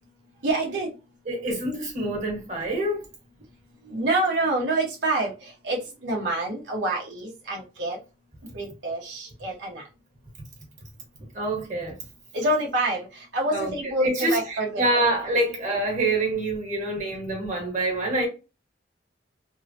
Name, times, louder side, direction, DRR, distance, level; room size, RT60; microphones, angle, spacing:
voice 1, 0.4-0.9 3.8-8.0 8.5-9.9 12.3-14.8, right 2 dB, 75° right, 1.0 m, -27 dB
voice 2, 1.3-3.0 11.3-11.9 13.5-13.7 14.0-18.3, right 2 dB, 45° right, 1.5 m, -26 dB
3.5 x 2.1 x 2.8 m
head